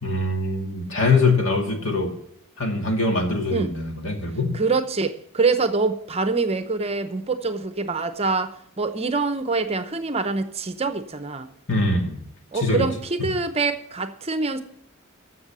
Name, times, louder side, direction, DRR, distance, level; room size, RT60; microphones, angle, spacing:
voice 1, 0.0-2.1 2.6-4.5 11.7-12.2 12.5-12.9, left 3 dB, 65° left, 2.2 m, -23 dB
voice 2, 4.5-11.5 12.5-14.6, right 4 dB, 30° right, 0.7 m, -25 dB
15.0 x 6.8 x 6.8 m
head